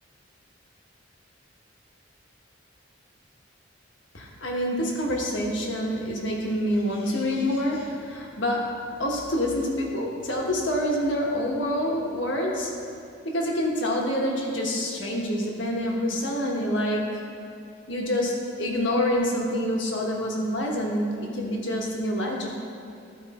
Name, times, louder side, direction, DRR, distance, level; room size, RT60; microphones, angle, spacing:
voice 1, 4.1-12.7 13.2-17.2 17.9-22.5, equal, 70° left, -1 dB, 1.4 m, -27 dB
13.5 x 4.7 x 4.2 m, 2.6 s
head